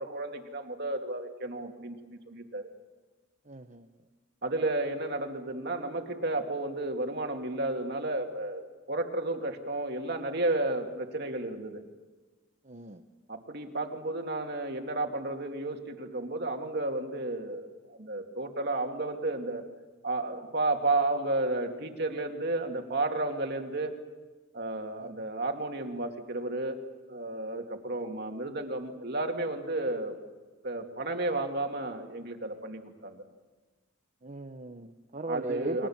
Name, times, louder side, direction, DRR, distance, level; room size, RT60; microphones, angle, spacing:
voice 1, 0.0-2.7 4.4-8.6 8.9-11.8 13.3-19.6 20.0-23.9 24.5-26.8 27.1-30.2 30.6-33.3 35.3-35.9, right 2 dB, 55° right, 4 dB, 2.5 m, -32 dB
voice 2, 3.5-3.9 12.6-13.0 25.0-25.1 34.2-35.9, right 2 dB, 40° right, 5 dB, 0.9 m, -37 dB
30.0 x 23.0 x 7.4 m, 1.3 s
head